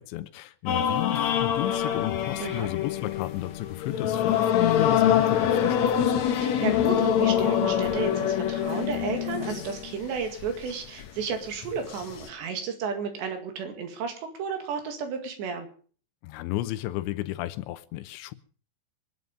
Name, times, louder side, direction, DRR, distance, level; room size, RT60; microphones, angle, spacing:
voice 1, 0.0-6.2 16.2-18.3, left 16 dB, 90° left, 3.2 m, -33 dB
sound 1, 0.7-10.7 11.0-11.2 11.6-12.3, left 9 dB, 75° left, 1.6 m, -25 dB
voice 2, 6.4-15.7, right 5 dB, 80° right, 4.3 m, -32 dB
24.5 x 9.5 x 5.3 m
omnidirectional pair, 5.0 m